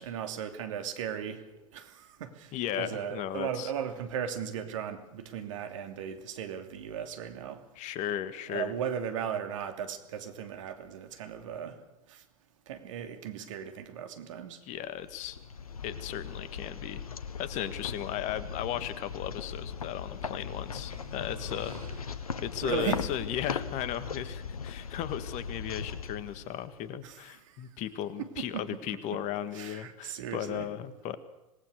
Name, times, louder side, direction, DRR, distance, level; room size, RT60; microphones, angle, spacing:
voice 1, 0.0-1.4 1.7-7.7 8.5-11.8 12.1-12.2 12.7-14.6 22.6-23.0 27.0-27.2 27.5-27.6 28.4-28.8 29.5-30.6, right 8 dB, 60° right, 7 dB, 2.9 m, -37 dB
voice 2, 2.5-3.7 7.7-8.7 14.6-15.4 15.8-17.0 17.4-21.7 22.0-22.1 22.4-31.2, left 10 dB, 40° left, 13 dB, 1.8 m, -36 dB
sound 1, 14.9-27.0, left 6 dB, 80° left, 1.2 m, -39 dB
sound 2, 18.7-24.5, equal, 80° right, 5.3 m, -52 dB
26.5 x 19.5 x 6.6 m, 0.98 s
figure-of-eight pair, 95°, 18 cm